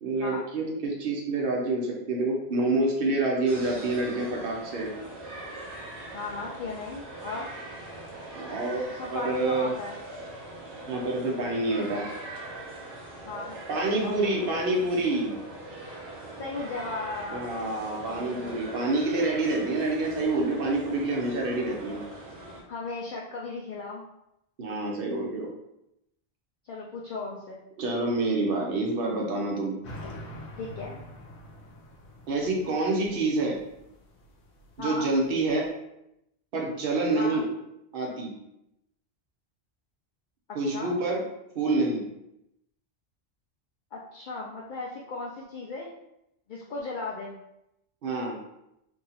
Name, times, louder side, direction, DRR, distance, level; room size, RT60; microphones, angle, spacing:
voice 1, 0.0-4.9 8.3-8.8 9.1-9.7 10.9-12.0 13.7-15.4 17.3-22.0 24.6-25.5 27.8-29.8 32.3-33.6 34.8-35.7 36.5-37.5 37.9-38.3 40.5-41.2 41.5-42.0 48.0-48.4, right 2 dB, 60° right, -1 dB, 1.0 m, -27 dB
sound 1, 3.5-22.6, right 2 dB, 85° right, 1.2 m, -41 dB
voice 2, 6.1-7.5 8.9-10.0 13.3-13.6 14.0-14.5 16.4-17.4 18.2-18.6 22.7-24.0 26.6-27.6 30.6-31.0 34.8-35.1 37.1-37.5 40.6-41.0 43.9-45.9 46.5-47.4, left 3 dB, 55° left, -3 dB, 0.6 m, -36 dB
sound 2, 29.8-35.7, left 1 dB, 80° left, 0.9 m, -46 dB
2.9 x 2.8 x 3.9 m, 0.82 s
omnidirectional pair, 1.1 m